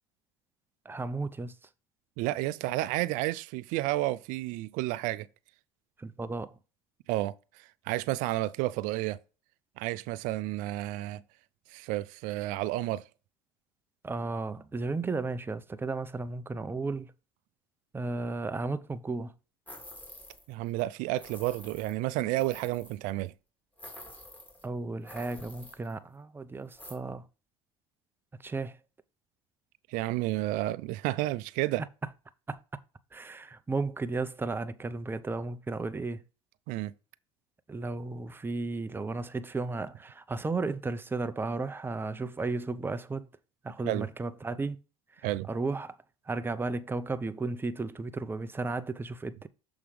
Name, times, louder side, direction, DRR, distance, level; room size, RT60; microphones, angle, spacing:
voice 1, 0.8-1.6 6.0-6.6 14.0-17.1 17.9-19.3 24.6-27.3 28.4-28.8 32.5-32.6 33.1-36.2 37.7-43.3 43.6-44.8 45.1-46.0 46.2-49.5, right 3 dB, 15° right, 0.7 m, -34 dB
voice 2, 2.2-5.3 7.1-9.2 9.8-11.2 11.7-13.0 20.5-23.3 29.9-31.8 36.7-36.9 43.9-44.1 45.2-45.5, right 17 dB, 70° right, 0.5 m, -31 dB
sound 1, 19.7-20.5 20.8-20.9 21.2-23.0 23.8-24.7 25.0-25.9 26.7-27.0, left 1 dB, 10° left, 2.5 m, -48 dB
7.0 x 3.7 x 4.9 m
supercardioid pair, 100°, 14 cm